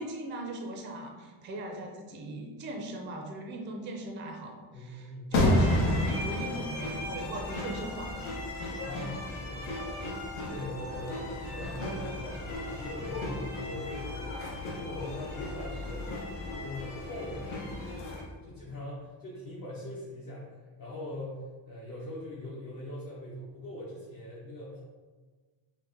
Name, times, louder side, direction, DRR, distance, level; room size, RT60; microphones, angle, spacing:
voice 1, 0.0-8.2, right 1 dB, 25° right, 2 dB, 0.4 m, -39 dB
voice 2, 4.7-5.3 8.8-10.1 10.5-16.2 16.5-24.8, left 1 dB, 45° left, -7 dB, 0.8 m, -42 dB
sound 1, 5.3-18.2, left 1 dB, 80° left, 1.1 m, -33 dB
5.5 x 2.1 x 2.7 m, 1.4 s
cardioid pair, 160°, 48 cm